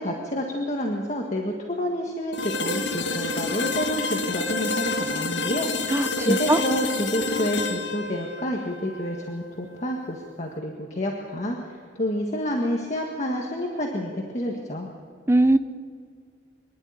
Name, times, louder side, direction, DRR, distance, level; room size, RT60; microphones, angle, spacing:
voice 1, 0.0-14.9, equal, 40° left, 1 dB, 1.7 m, -29 dB
sound 1, 2.3-10.2, left 3 dB, 75° left, 1.6 m, -29 dB
voice 2, 5.9-6.6 15.3-15.6, right 1 dB, 15° right, 10 dB, 0.7 m, -20 dB
24.0 x 11.5 x 9.5 m, 2.2 s
head